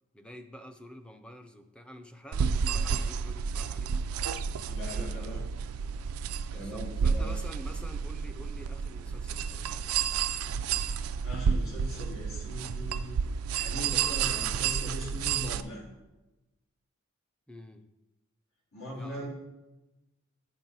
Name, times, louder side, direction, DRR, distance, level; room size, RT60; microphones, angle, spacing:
voice 1, 0.1-4.0 4.6-5.6 6.5-9.9 17.5-17.9 18.9-19.3, equal, 5° left, 7 dB, 0.5 m, -48 dB
sound 1, 2.3-15.6, right 6 dB, 80° right, 0.4 m, -31 dB
voice 2, 4.7-5.4 6.5-7.3 11.2-13.2 13.5-15.8 18.7-19.3, equal, 80° left, -4 dB, 2.9 m, -40 dB
8.8 x 6.1 x 4.0 m, 1.0 s
head